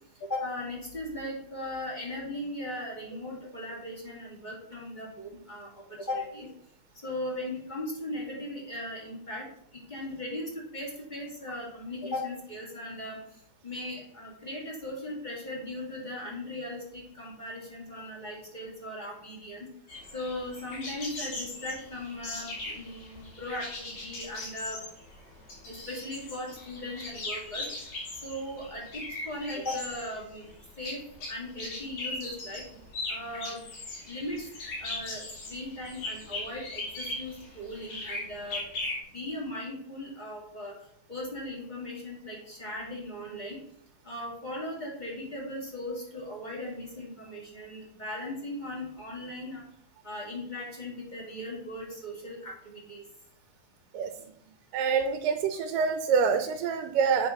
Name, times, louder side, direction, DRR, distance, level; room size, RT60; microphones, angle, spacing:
voice 1, 0.2-6.5 7.0-9.5 9.7-13.2 13.6-19.7 20.1-24.8 25.6-27.7 28.1-30.5 30.8-31.0 31.3-32.6 33.1-33.6 34.0-34.4 34.8-38.6 39.1-40.7 41.1-43.6 44.0-49.6 50.0-53.0, left 1 dB, 15° left, -3 dB, 2.0 m, -38 dB
sound 1, 19.9-39.0, left 2 dB, 60° left, 3.8 m, -39 dB
voice 2, 54.7-57.3, right 6 dB, 85° right, 5 dB, 2.3 m, -26 dB
8.0 x 5.1 x 6.0 m, 0.68 s
omnidirectional pair, 3.8 m